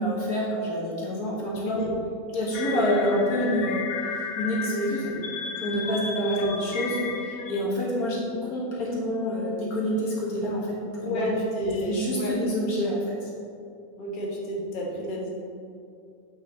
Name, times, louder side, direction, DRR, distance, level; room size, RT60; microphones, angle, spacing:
voice 1, 0.0-1.8 2.3-5.1 5.6-11.4 11.9-13.3, equal, 90° left, -5 dB, 2.2 m, -28 dB
voice 2, 1.4-1.9 2.7-3.2 4.7-5.2 6.2-6.5 11.0-12.3 14.0-15.3, equal, 35° left, -3 dB, 1.3 m, -30 dB
sound 1, 2.5-7.6, left 5 dB, 65° left, 0.5 m, -34 dB
8.4 x 5.8 x 3.8 m, 2.5 s
omnidirectional pair, 1.5 m